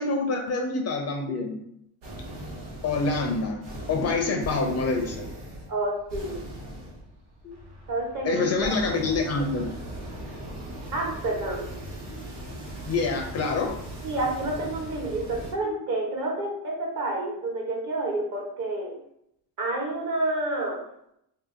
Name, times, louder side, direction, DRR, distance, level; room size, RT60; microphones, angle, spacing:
voice 1, 0.0-1.6 2.8-3.6 3.9-5.3 7.4-7.6 8.2-9.7 12.9-13.7 15.6-15.9, left 3 dB, 40° left, 3 dB, 0.5 m, -26 dB
sound 1, 2.0-15.5, right 1 dB, 75° right, 1.3 m, -39 dB
voice 2, 5.7-6.4 7.9-8.8 10.9-11.7 14.0-18.9 19.6-20.8, right 2 dB, 45° right, -1 dB, 1.1 m, -29 dB
2.7 x 2.7 x 3.7 m, 0.76 s
cardioid pair, 140°, 43 cm